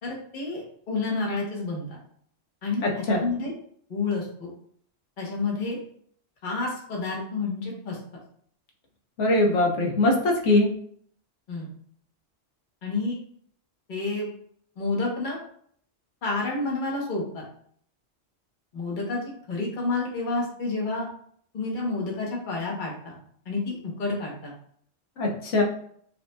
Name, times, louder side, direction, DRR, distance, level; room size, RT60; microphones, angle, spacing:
voice 1, 0.0-2.0 2.6-3.5 3.9-4.5 5.2-5.8 6.4-8.0 11.5-11.7 12.8-13.2 13.9-14.3 14.8-15.4 16.2-17.5 18.7-19.2 19.5-21.1 21.5-23.1 23.4-24.5, left 3 dB, 45° left, -2 dB, 1.1 m, -29 dB
voice 2, 2.8-3.2 9.2-10.7 25.2-25.6, left 2 dB, 90° left, 0 dB, 1.2 m, -22 dB
5.5 x 2.7 x 2.2 m, 0.62 s
omnidirectional pair, 1.2 m